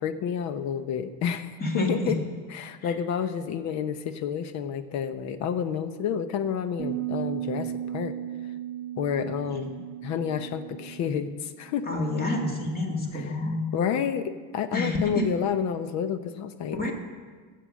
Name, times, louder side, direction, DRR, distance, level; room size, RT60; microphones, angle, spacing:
voice 1, 0.0-2.2 2.5-8.2 9.0-11.9 13.1-13.3 13.7-16.9, left 8 dB, 45° left, 12 dB, 0.9 m, -30 dB
voice 2, 1.6-2.1 2.8-2.9 9.5-9.6 11.9-13.7 14.7-15.3 16.8-16.9, left 1 dB, 25° left, 2 dB, 2.1 m, -28 dB
sound 1, 6.8-13.0, right 12 dB, 35° right, 0.7 m, -36 dB
15.0 x 7.7 x 6.4 m, 1.5 s
cardioid pair, 145°, 38 cm